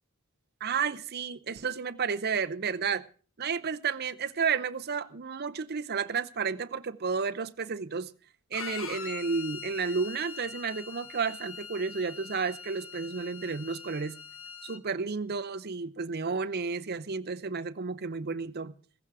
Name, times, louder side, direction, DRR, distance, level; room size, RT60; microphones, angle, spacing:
voice 1, 0.6-3.0 3.4-8.1 8.5-14.2 14.6-18.7, right 5 dB, 50° right, 0.7 m, -32 dB
Bowed string instrument, 8.5-14.8, left 6 dB, 65° left, 1.3 m, -43 dB
16.0 x 14.5 x 4.8 m
head